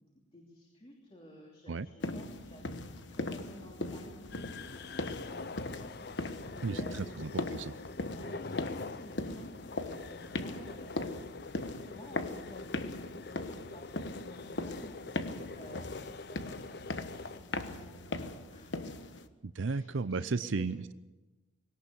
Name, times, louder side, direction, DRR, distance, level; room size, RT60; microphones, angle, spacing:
voice 1, 0.3-7.2 8.0-11.2 11.6-18.2 18.5-19.2 19.7-20.7, equal, 30° left, -1 dB, 3.0 m, -53 dB
sound 1, 2.0-19.3, left 2 dB, 70° left, 1.2 m, -39 dB
sound 2, 4.3-17.4, left 3 dB, 55° left, 0.6 m, -45 dB
voice 2, 6.6-7.8 19.4-20.9, right 4 dB, 85° right, 13 dB, 0.6 m, -34 dB
21.5 x 18.0 x 7.0 m, 1.1 s
head